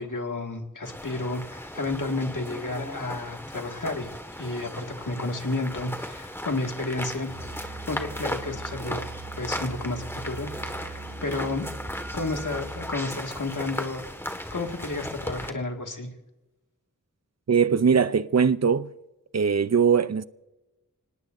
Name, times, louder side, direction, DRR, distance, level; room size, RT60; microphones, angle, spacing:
voice 1, 0.0-9.0 9.4-11.7 12.1-14.0 14.5-16.1, left 2 dB, 75° left, 2.1 m, -32 dB
sound 1, 0.8-15.5, equal, 5° left, 1.7 m, -37 dB
Musical instrument, 7.3-13.0, right 3 dB, 85° right, 2.4 m, -41 dB
voice 2, 17.5-18.9 19.3-20.2, right 6 dB, 55° right, 0.6 m, -21 dB
25.5 x 19.0 x 2.7 m
wide cardioid pair, 55°, 31 cm